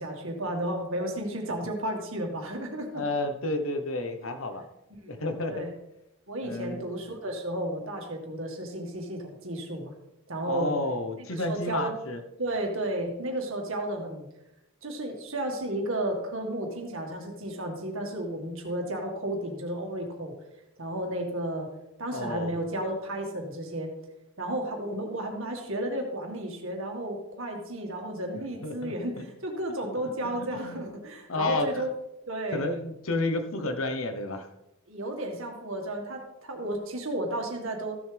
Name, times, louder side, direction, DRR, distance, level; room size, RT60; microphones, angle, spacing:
voice 1, 0.0-3.0 5.0-5.2 5.5-5.7 6.3-9.9 10.3-10.8 11.3-11.9 12.4-14.3 14.8-20.3 20.8-21.7 22.0-23.9 24.4-31.9 32.3-32.7 34.9-38.0, right 1 dB, 65° right, 2 dB, 2.0 m, -33 dB
voice 2, 2.9-4.6 5.1-5.7 6.4-6.8 10.5-12.2 22.1-22.6 28.6-29.2 30.2-30.8 31.3-31.9 32.5-34.5, left 2 dB, 65° left, 7 dB, 1.1 m, -31 dB
14.5 x 7.2 x 3.5 m, 0.90 s
head